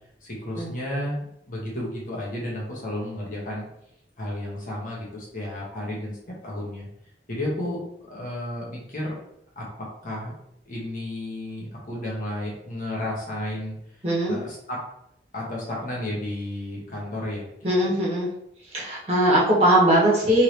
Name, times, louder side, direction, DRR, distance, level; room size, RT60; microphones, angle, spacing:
voice 1, 0.2-3.7 4.2-6.2 6.4-6.9 7.3-9.1 9.5-9.6 10.0-10.3 10.7-13.7 14.3-14.8 15.3-17.7, left 1 dB, 45° left, -5 dB, 1.3 m, -32 dB
voice 2, 14.0-14.4 17.6-18.3 18.7-20.4, right 1 dB, 35° right, -6 dB, 1.3 m, -20 dB
3.6 x 3.3 x 3.0 m, 0.77 s
head